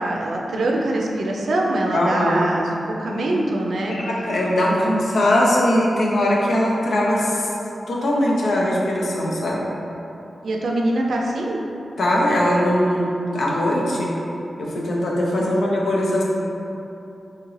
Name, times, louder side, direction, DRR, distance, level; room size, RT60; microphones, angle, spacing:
voice 1, 0.0-2.7 3.0-4.0 4.7-4.9 10.4-11.6 15.3-15.6, right 1 dB, 70° right, -1 dB, 0.4 m, -23 dB
voice 2, 1.9-2.4 3.9-7.5 7.9-9.6 12.0-13.1 13.3-14.1 14.6-16.2, left 1 dB, 80° left, -4 dB, 0.6 m, -20 dB
3.6 x 2.8 x 3.2 m, 2.9 s
wide cardioid pair, 160°, 0 cm